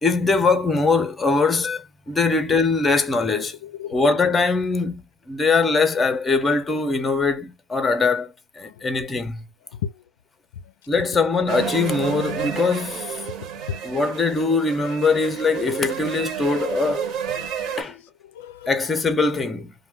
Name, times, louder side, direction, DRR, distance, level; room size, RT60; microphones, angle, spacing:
voice 1, 0.0-3.6 3.9-9.5 10.9-13.2 13.8-17.1 17.8-18.0 18.7-19.7, left 4 dB, 15° left, 0.6 m, -22 dB
voice 2, 3.6-4.1 8.6-9.0 9.7-10.0 13.7-13.8 17.4-18.9, left 9 dB, 90° left, 0.4 m, -35 dB
sound 1, 11.5-17.8, right 7 dB, 40° right, 0.9 m, -30 dB
2.7 x 2.1 x 3.4 m
supercardioid pair, 140°, 0 cm